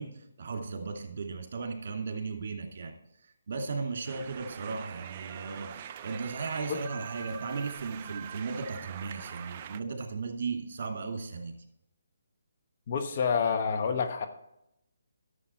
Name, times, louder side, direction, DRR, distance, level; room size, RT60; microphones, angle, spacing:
voice 1, 0.0-2.9 3.2-11.5, right 4 dB, 50° right, 4 dB, 2.4 m, -36 dB
sound 1, 4.1-9.8, right 9 dB, 35° right, 0.4 m, -44 dB
voice 2, 12.9-14.3, left 6 dB, 45° left, 6 dB, 1.0 m, -28 dB
11.0 x 7.2 x 4.4 m, 0.84 s
figure-of-eight pair, 150°, 0 cm